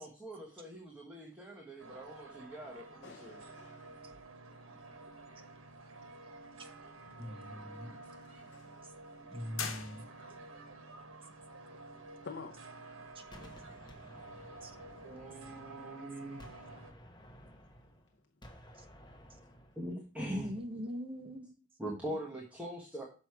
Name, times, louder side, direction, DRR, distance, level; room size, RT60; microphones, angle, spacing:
voice 1, 0.0-3.4 15.0-16.4 19.8-20.5 21.8-23.1, right 1 dB, 5° right, 1.2 m, -43 dB
sound 1, 1.8-16.9, right 2 dB, 85° right, 1.1 m, -51 dB
voice 2, 3.0-4.2 6.5-6.6 7.4-10.1 12.0-12.9 17.5-17.9, left 5 dB, 60° left, 0.6 m, -53 dB
voice 3, 7.2-8.0 9.3-10.0 13.1-13.2 14.6-14.7 20.3-21.5, equal, 25° right, 0.8 m, -41 dB
sound 2, 9.5-10.6, left 6 dB, 80° left, 1.2 m, -41 dB
Gunshot gunfire, 13.3-16.0 16.4-19.9, equal, 20° left, 1.2 m, -55 dB
6.2 x 6.0 x 4.7 m
head